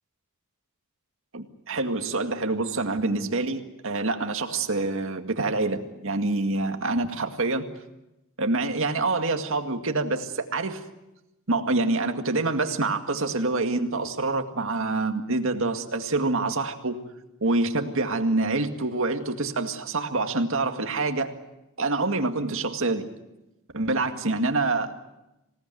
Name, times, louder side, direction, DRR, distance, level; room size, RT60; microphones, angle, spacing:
voice 1, 1.3-7.7 8.4-10.8 11.5-17.0 17.4-21.3 21.8-23.1 23.7-24.9, right 3 dB, 65° right, 6 dB, 2.1 m, -26 dB
26.5 x 18.0 x 9.2 m, 0.96 s
head